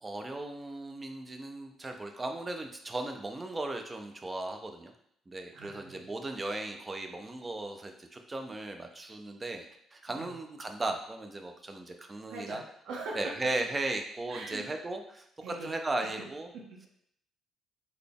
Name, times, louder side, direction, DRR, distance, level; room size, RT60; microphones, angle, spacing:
voice 1, 0.0-4.9 5.3-9.7 9.9-12.6 13.1-15.3 15.6-16.5, right 2 dB, 15° right, 5 dB, 0.3 m, -36 dB
voice 2, 5.5-6.1 10.1-10.4 12.3-13.4 14.3-14.7 15.4-15.7 16.0-16.2 16.5-16.9, right 3 dB, 85° right, -1 dB, 0.6 m, -42 dB
3.9 x 2.2 x 3.4 m, 0.71 s
cardioid pair, 165°, 0 cm